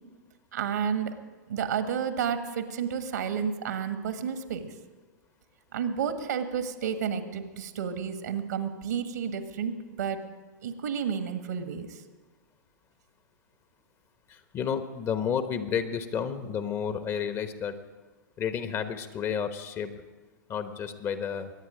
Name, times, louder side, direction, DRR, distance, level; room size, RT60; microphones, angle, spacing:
voice 1, 0.5-1.1 1.5-4.7 5.7-9.7 10.0-10.2 10.6-12.0, right 7 dB, 65° right, 8 dB, 1.5 m, -31 dB
voice 2, 14.3-17.8 18.4-19.9 20.5-21.5, left 7 dB, 30° left, 10 dB, 1.1 m, -31 dB
22.5 x 9.5 x 5.1 m, 1.3 s
figure-of-eight pair, 105°, 10 cm